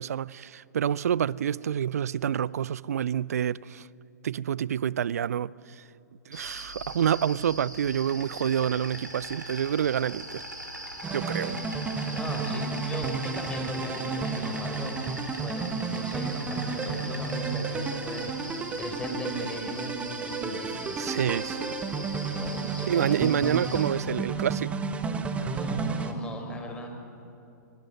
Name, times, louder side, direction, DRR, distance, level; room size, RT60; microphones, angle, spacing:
voice 1, 0.0-3.9 4.2-5.5 6.3-10.4 11.1-11.6 21.0-21.8 22.9-24.7, right 9 dB, 55° right, 0.5 m, -28 dB
Insect, 6.3-23.9, equal, 85° right, 4.6 m, -41 dB
sound 1, 11.0-26.1, right 5 dB, 10° right, 1.3 m, -32 dB
voice 2, 12.0-21.1 22.2-23.1 25.5-26.9, equal, 10° left, 4.2 m, -38 dB
24.0 x 22.0 x 7.8 m
figure-of-eight pair, 115°, 10 cm